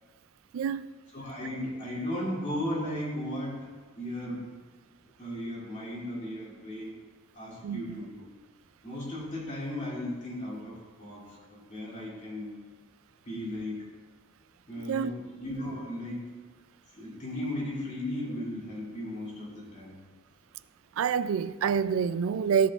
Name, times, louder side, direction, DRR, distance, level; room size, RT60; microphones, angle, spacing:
voice 1, 0.5-0.9 7.6-8.0 14.8-15.1 21.0-22.7, right 7 dB, 75° right, 0.3 m, -27 dB
voice 2, 1.1-3.7 4.0-4.5 5.2-7.0 7.3-8.2 8.8-12.6 13.2-13.9 14.7-16.3 16.9-20.0, left 1 dB, 35° left, 2.5 m, -36 dB
16.5 x 5.5 x 2.4 m
head